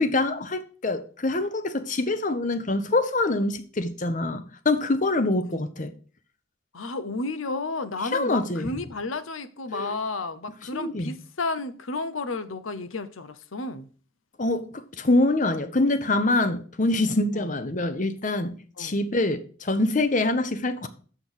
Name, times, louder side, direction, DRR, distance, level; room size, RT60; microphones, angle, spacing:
voice 1, 0.0-5.9 8.1-8.7 9.7-10.0 10.7-11.1 14.4-20.9, left 2 dB, 40° left, 0.8 m, -25 dB
voice 2, 6.7-13.9 17.3-17.5 18.8-18.9, left 3 dB, 85° left, 0.8 m, -32 dB
7.1 x 6.0 x 6.2 m
head